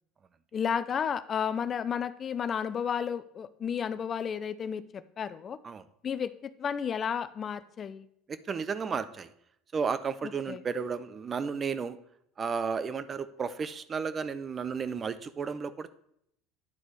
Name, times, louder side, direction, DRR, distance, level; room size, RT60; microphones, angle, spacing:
voice 1, 0.5-5.6 6.0-8.1 10.5-10.6, left 7 dB, 35° left, 15 dB, 0.4 m, -32 dB
voice 2, 8.3-9.3 9.7-12.0 12.4-16.0, right 5 dB, 30° right, 14 dB, 0.5 m, -33 dB
9.8 x 4.1 x 4.6 m, 0.73 s
supercardioid pair, 90°, 0 cm